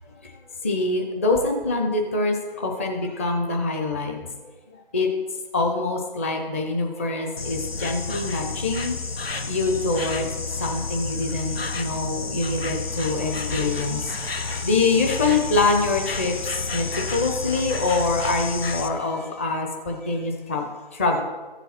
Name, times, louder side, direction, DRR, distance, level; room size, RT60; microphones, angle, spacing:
voice 1, 0.6-4.2 4.7-5.1 5.5-9.0 9.4-21.2, left 3 dB, 15° left, 2 dB, 0.7 m, -25 dB
Insect, 7.4-18.9, left 4 dB, 85° left, 0.9 m, -30 dB
14.5 x 6.9 x 4.3 m, 1.3 s
figure-of-eight pair, 150°, 29 cm